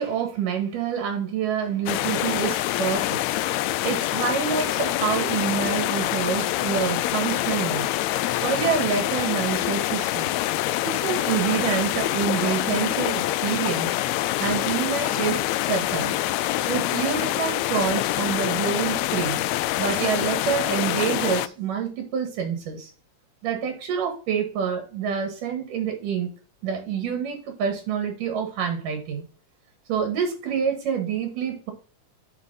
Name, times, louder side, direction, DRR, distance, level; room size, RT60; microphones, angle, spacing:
voice 1, 0.0-3.2 3.8-7.9 8.4-10.3 10.8-14.0 14.4-16.4 16.6-19.5 19.8-22.9 23.4-26.3 26.6-29.2 29.9-31.7, right 7 dB, 85° right, 4 dB, 3.6 m, -27 dB
sound 1, 1.9-21.5, left 15 dB, 85° left, 1.6 m, -25 dB
9.8 x 4.4 x 4.0 m, 0.38 s
omnidirectional pair, 3.6 m